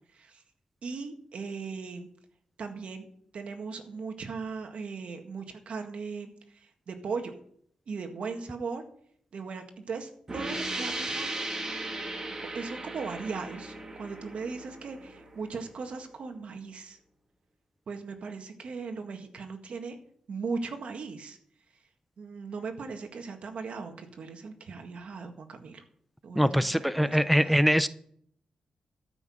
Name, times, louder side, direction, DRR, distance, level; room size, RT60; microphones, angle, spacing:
voice 1, 0.1-0.4 0.8-2.1 2.6-3.1 3.3-7.4 7.9-8.8 9.3-11.3 12.3-17.0 17.9-20.0 20.3-21.4 22.2-25.8 26.2-27.6, right 4 dB, 65° right, 6 dB, 1.8 m, -38 dB
sound 1, 10.3-15.8, right 2 dB, 30° right, 2.3 m, -37 dB
voice 2, 26.4-27.9, equal, ahead, 13 dB, 0.4 m, -23 dB
13.5 x 6.0 x 7.5 m, 0.64 s
cardioid pair, 95°, 2 cm